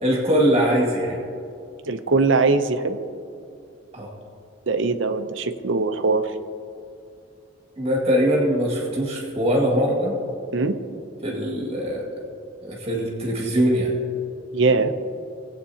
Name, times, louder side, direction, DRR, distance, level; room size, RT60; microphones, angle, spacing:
voice 1, 0.0-1.2 3.9-4.1 7.8-10.2 11.2-12.2 12.6-13.9, equal, 30° right, -2 dB, 2.0 m, -22 dB
voice 2, 1.9-3.0 4.7-6.3 10.5-10.8 14.5-14.9, right 3 dB, 70° right, 9 dB, 0.7 m, -21 dB
19.0 x 8.2 x 2.8 m, 2.5 s
head